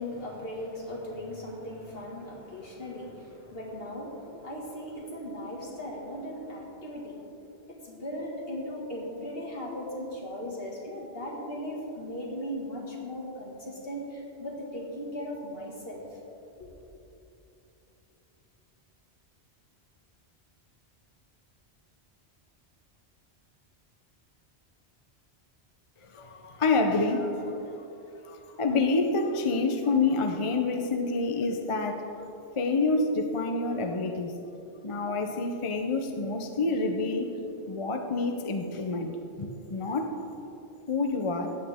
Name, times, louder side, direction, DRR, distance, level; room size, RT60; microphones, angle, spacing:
voice 1, 0.0-7.2 7.7-16.2 16.6-16.7, left 1 dB, 60° left, -3 dB, 2.2 m, -38 dB
voice 2, 26.0-27.8 28.2-32.0 32.6-34.4 34.8-37.3 37.7-39.1 39.4-40.1 40.9-41.6, left 3 dB, 35° left, 5 dB, 0.6 m, -28 dB
15.0 x 9.1 x 3.6 m, 3.0 s
omnidirectional pair, 1.1 m